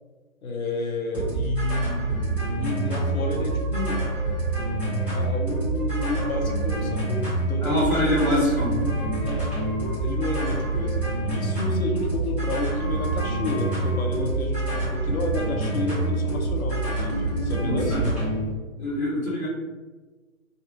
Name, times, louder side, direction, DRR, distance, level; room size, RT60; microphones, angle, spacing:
voice 1, 0.4-4.0 5.1-8.9 9.2-9.4 10.0-18.0, left 2 dB, 90° left, 2 dB, 0.7 m, -31 dB
sound 1, 1.1-18.5, right 2 dB, 5° right, 0.8 m, -27 dB
sound 2, 3.2-7.4 8.1-11.5 12.4-16.7, left 1 dB, 30° left, 1.2 m, -42 dB
voice 2, 7.6-8.8 17.6-18.0 18.8-19.5, equal, 50° left, -8 dB, 1.1 m, -24 dB
2.4 x 2.3 x 3.0 m, 1.3 s
figure-of-eight pair, 135°, 41 cm